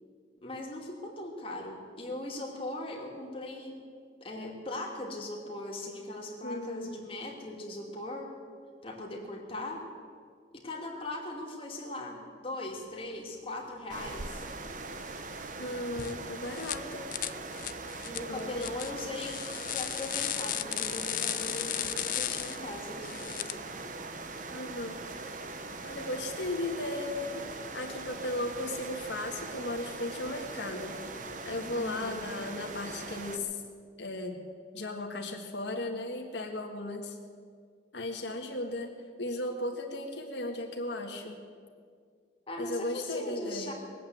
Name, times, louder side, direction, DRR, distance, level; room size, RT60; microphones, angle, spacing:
voice 1, 0.4-3.7 4.2-8.3 8.8-9.8 10.5-14.4 18.0-19.4 19.6-23.6 31.7-32.4 42.5-43.7, left 2 dB, 30° left, -1 dB, 2.5 m, -39 dB
voice 2, 6.4-7.0 15.6-17.1 18.3-18.7 24.5-25.0 25.8-30.9 31.4-33.6 34.0-34.3 34.7-37.2 37.9-38.9 39.2-41.4 42.6-43.7, left 1 dB, 70° left, 2 dB, 1.7 m, -36 dB
sound 1, 13.9-33.4, right 3 dB, 45° right, 0.9 m, -41 dB
sound 2, 16.0-16.1 16.5-16.8 17.1-23.5, left 14 dB, 45° left, 0.4 m, -35 dB
20.0 x 8.6 x 7.9 m, 2.1 s
head